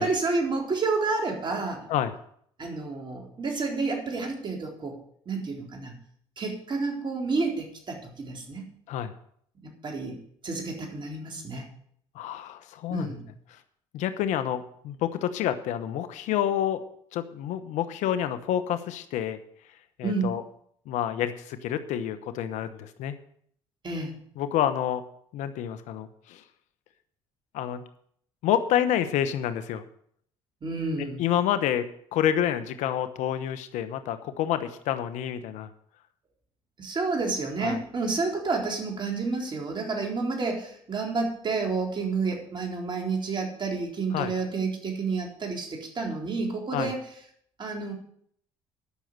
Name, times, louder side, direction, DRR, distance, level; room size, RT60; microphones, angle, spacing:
voice 1, 0.0-1.9 2.6-5.0 5.3-5.9 6.4-8.7 9.6-10.2 10.4-11.7 12.9-13.2 20.0-20.4 23.8-24.1 30.6-31.2 36.8-47.0 47.6-47.9, right 3 dB, 40° right, 1 dB, 3.9 m, -30 dB
voice 2, 12.1-13.1 13.5-13.6 13.9-16.8 17.1-19.4 20.0-20.4 20.9-23.2 24.4-25.0 25.3-26.4 27.5-27.8 28.4-29.8 31.0-35.7 37.6-37.8 44.1-44.3 46.7-46.9, left 10 dB, 75° left, 11 dB, 1.0 m, -28 dB
11.5 x 6.6 x 8.0 m, 0.65 s
supercardioid pair, 70°, 13 cm